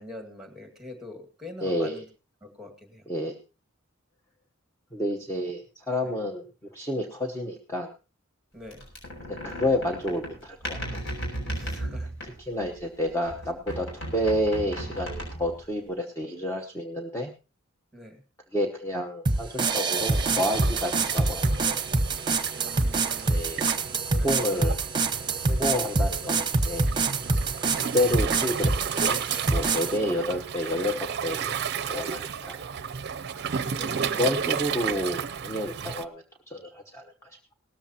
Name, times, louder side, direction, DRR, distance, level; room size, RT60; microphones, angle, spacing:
voice 1, 0.0-2.1 2.4-3.1 6.0-6.1 8.5-8.9 11.5-12.1 14.1-14.2 17.9-18.2 22.6-23.8 24.1-24.6 29.9-30.1 33.7-34.2, left 1 dB, 5° right, 4 dB, 2.0 m, -44 dB
voice 2, 1.6-2.0 3.1-3.3 4.9-6.5 6.7-7.9 9.3-11.0 11.6-11.7 12.5-17.3 18.5-21.8 23.2-24.9 25.5-26.9 27.8-29.2 29.5-32.6 33.3-33.5 33.8-37.4, left 1 dB, 15° left, 2 dB, 1.0 m, -30 dB
sound 1, 8.7-12.9 13.3-15.7, right 1 dB, 65° left, 6.5 m, -35 dB
sound 2, 19.3-30.0, right 3 dB, 25° right, 1.1 m, -26 dB
Waves surf, 20.0-36.1, right 7 dB, 55° right, 0.5 m, -33 dB
18.0 x 13.5 x 2.9 m, 0.33 s
head